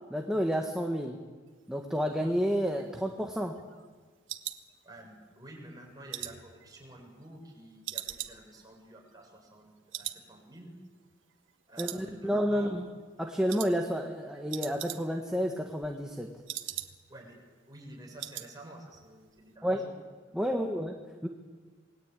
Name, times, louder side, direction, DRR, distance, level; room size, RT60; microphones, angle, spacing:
voice 1, 0.1-1.2 1.7-3.6 11.8-12.9 13.2-16.3 19.6-19.8 20.3-20.9 21.2-21.3, equal, 5° right, 2 dB, 1.6 m, -30 dB
sound 1, 2.6-5.3 5.7-7.5 7.8-9.7 9.9-10.3 10.5-10.6 11.1-11.5 11.8-12.5 12.8-13.1 13.5-13.7 14.0-14.1 14.3-15.3 15.6-17.2 17.5-17.6 17.9-18.5 18.8-19.1 19.4-19.5, right 12 dB, 75° right, 1.5 m, -41 dB
voice 2, 4.8-10.8 11.7-12.7 17.1-17.4 17.7-19.9 20.3-20.8, right 1 dB, 20° right, 0 dB, 7.3 m, -50 dB
27.5 x 21.5 x 9.1 m, 1.5 s
head